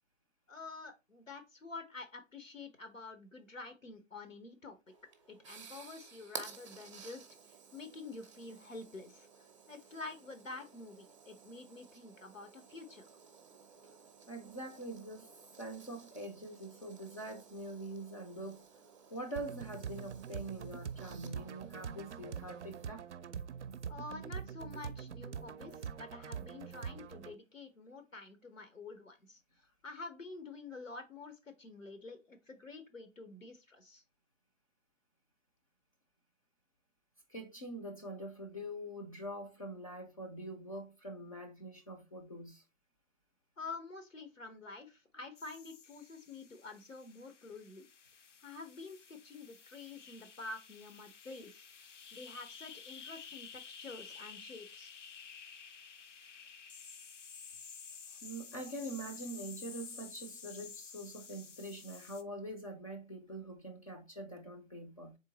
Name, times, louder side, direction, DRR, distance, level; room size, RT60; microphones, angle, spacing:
voice 1, 0.5-4.8 5.3-13.1 23.9-34.0 43.6-47.9 48.4-54.9, left 3 dB, 90° left, 1.1 m, -48 dB
sound 1, 4.9-22.9, right 6 dB, 25° right, 0.6 m, -55 dB
voice 2, 14.3-15.3 15.6-18.6 19.1-23.1 37.3-42.6 58.2-65.2, right 1 dB, 30° left, 0.4 m, -44 dB
sound 2, 19.4-27.4, right 7 dB, 65° right, 0.5 m, -44 dB
sound 3, 45.4-62.2, left 6 dB, 70° left, 0.6 m, -52 dB
3.7 x 3.4 x 4.0 m
figure-of-eight pair, 135°, 38 cm